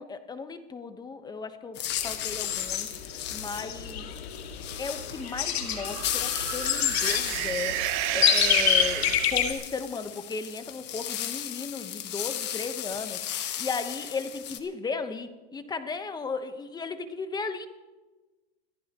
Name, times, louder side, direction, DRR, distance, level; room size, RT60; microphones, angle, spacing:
voice 1, 0.0-4.1 4.8-17.7, left 4 dB, 15° left, 9 dB, 1.1 m, -36 dB
sound 1, 1.7-14.6, left 11 dB, 35° left, 1.6 m, -35 dB
sound 2, 1.9-9.5, left 9 dB, 85° left, 2.2 m, -28 dB
sound 3, 5.3-9.6, right 16 dB, 45° right, 0.9 m, -32 dB
25.5 x 15.0 x 3.0 m, 1.2 s
supercardioid pair, 135°, 31 cm